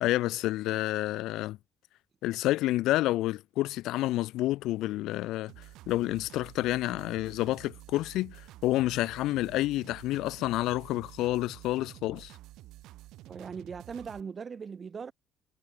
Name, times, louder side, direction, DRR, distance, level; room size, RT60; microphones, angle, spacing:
voice 1, 0.0-1.6 2.2-12.3, left 16 dB, 90° left, 0.4 m, -29 dB
sound 1, 5.5-14.2, right 16 dB, 85° right, 7.6 m, -50 dB
voice 2, 13.3-15.1, right 6 dB, 25° right, 2.3 m, -39 dB
cardioid pair, 175°, 0 cm